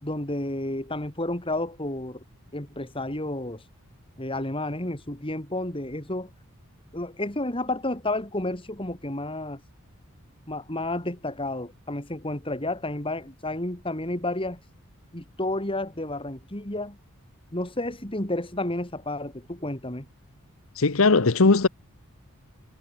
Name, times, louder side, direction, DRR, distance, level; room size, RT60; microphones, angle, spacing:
voice 1, 0.0-2.2 2.5-3.6 4.2-6.3 6.9-9.6 10.5-14.6 15.1-17.0 17.5-20.1, left 1 dB, 25° left, 3.3 m, -31 dB
voice 2, 20.7-21.7, left 3 dB, 70° left, 1.0 m, -19 dB
head